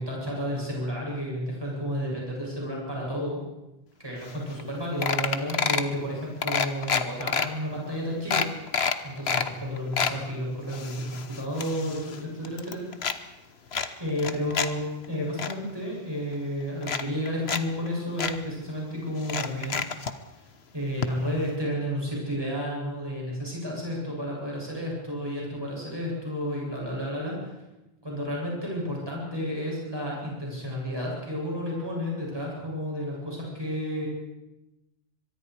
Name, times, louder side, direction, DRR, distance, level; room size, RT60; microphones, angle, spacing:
voice 1, 0.0-3.4 4.0-8.5 9.0-12.8 14.0-19.8 20.7-27.5 28.0-34.1, equal, 25° right, -4 dB, 8.2 m, -31 dB
sound 1, 4.3-4.4 4.6-4.7 5.0-5.9 6.4-7.5 7.9-8.0 8.3-9.5 9.8-10.2 10.7-12.2 12.4-13.2 13.7-14.7 15.0-15.5 16.3-16.4 16.8-17.6 17.9-18.0 18.2-18.3 19.2-20.1 21.0-21.1 21.4-21.5, left 6 dB, 85° left, 1.4 m, -28 dB
24.0 x 23.0 x 4.9 m, 0.97 s
omnidirectional pair, 1.0 m